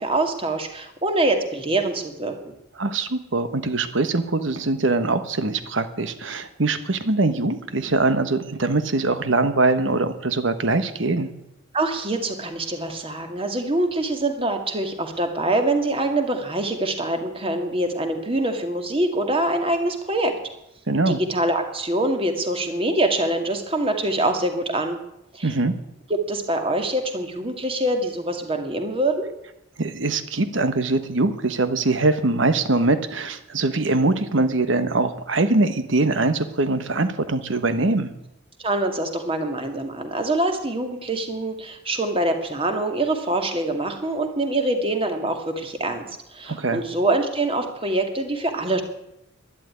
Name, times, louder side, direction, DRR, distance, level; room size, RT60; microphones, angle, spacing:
voice 1, 0.0-2.5 11.7-20.3 21.1-25.0 25.3-25.5 26.1-29.3 38.6-46.1 46.3-48.8, right 1 dB, 25° right, 5 dB, 2.1 m, -24 dB
voice 2, 2.8-11.3 20.9-21.2 25.4-25.7 29.8-38.1 46.5-46.8, right 2 dB, 65° right, 10 dB, 1.3 m, -22 dB
12.0 x 11.5 x 9.8 m, 0.86 s
head